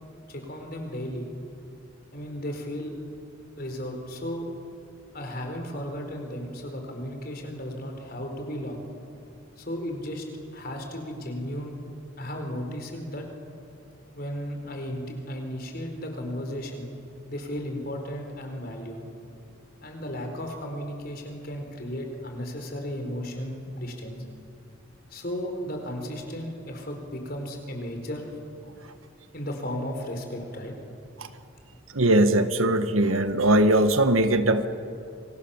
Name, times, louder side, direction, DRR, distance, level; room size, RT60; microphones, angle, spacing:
voice 1, 0.3-1.3 2.1-2.9 3.6-4.5 5.1-8.8 9.6-10.2 10.5-11.7 12.2-13.2 14.1-16.9 17.3-19.0 19.8-24.2 25.1-28.4 29.3-30.8, equal, 45° left, 4 dB, 4.5 m, -34 dB
voice 2, 31.9-34.7, right 1 dB, 90° right, 9 dB, 1.6 m, -20 dB
29.5 x 24.0 x 7.3 m, 2.5 s
head